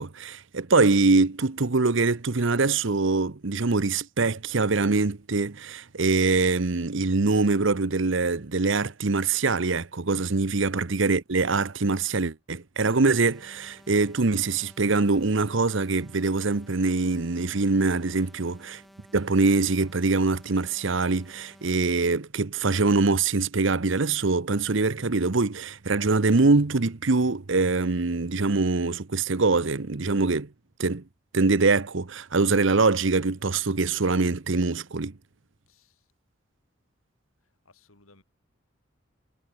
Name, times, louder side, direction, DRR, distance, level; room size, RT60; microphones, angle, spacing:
voice 1, 0.0-18.8 19.1-30.5 30.8-31.0 31.3-35.1, right 3 dB, 65° right, 0.9 m, -23 dB
sound 1, 12.8-21.8, equal, ahead, 3.1 m, -54 dB
voice 2, 18.0-18.4 35.7-36.0 37.6-38.2, left 2 dB, 85° left, 4.2 m, -59 dB
head